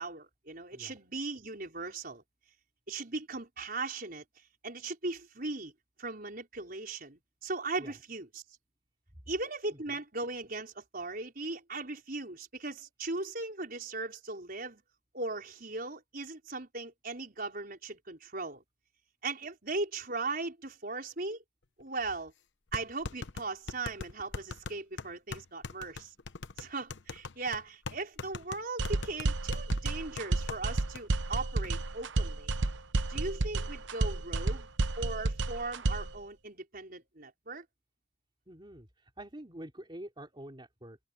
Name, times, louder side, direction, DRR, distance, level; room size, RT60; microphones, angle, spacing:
voice 1, 0.0-2.2 2.9-4.2 4.6-5.7 6.0-8.4 9.3-14.8 15.1-18.6 19.2-21.4 21.8-22.3 22.7-26.1 26.6-32.5 33.1-34.7 35.0-37.7, right 3 dB, 50° right, 5.3 m, -38 dB
sound 1, 21.8-21.9 22.7-30.7 31.0-31.1 31.4-31.7, left 4 dB, 70° left, 0.9 m, -41 dB
sound 2, 28.8-36.2, right 2 dB, 75° right, 0.9 m, -31 dB
voice 2, 38.5-41.0, right 1 dB, 25° right, 3.2 m, -46 dB
head